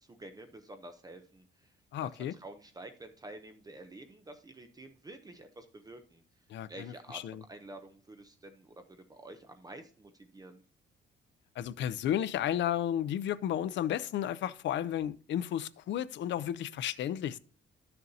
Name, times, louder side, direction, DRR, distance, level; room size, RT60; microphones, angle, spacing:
voice 1, 0.1-1.4 2.0-6.2 6.7-10.6, right 2 dB, 20° right, 0.7 m, -49 dB
voice 2, 1.9-2.3 6.5-7.4 11.6-17.4, left 10 dB, 65° left, 0.5 m, -33 dB
12.0 x 6.6 x 2.7 m
cardioid pair, 150°, 20 cm